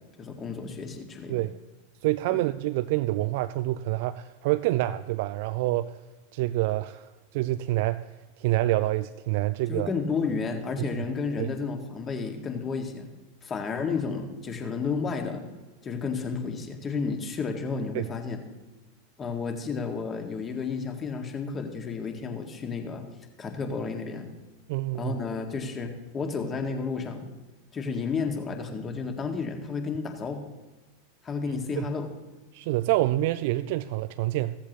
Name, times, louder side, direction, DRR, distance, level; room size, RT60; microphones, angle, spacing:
voice 1, 0.2-1.4 9.7-13.1 13.4-15.5 15.8-18.4 19.2-23.1 23.4-24.3 24.9-27.3 27.7-30.4 31.2-32.1, left 5 dB, 25° left, 4 dB, 2.1 m, -32 dB
voice 2, 2.0-5.9 6.3-8.0 8.4-9.9 11.4-11.5 17.9-18.1 24.7-25.2 31.8-31.9 32.5-34.6, right 16 dB, 55° right, 13 dB, 0.4 m, -27 dB
16.0 x 14.0 x 3.1 m, 1.2 s
figure-of-eight pair, 85°, 0 cm